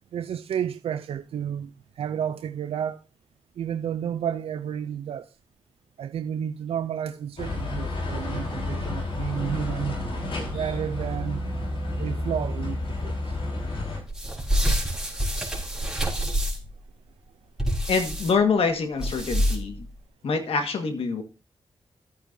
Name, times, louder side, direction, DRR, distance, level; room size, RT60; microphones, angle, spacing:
voice 1, 0.1-3.0 3.6-5.3 6.0-10.0 10.5-11.4 12.0-13.4, right 9 dB, 90° right, 0.5 m, -31 dB
sound 1, 7.4-14.0, left 2 dB, 70° left, 4.7 m, -30 dB
sound 2, 14.1-16.7 17.6-18.3 19.0-19.8, equal, 5° right, 4.2 m, -26 dB
voice 2, 17.9-19.8 20.2-21.2, left 5 dB, 85° left, 1.6 m, -25 dB
13.5 x 9.0 x 2.7 m
cardioid pair, 70°, 10 cm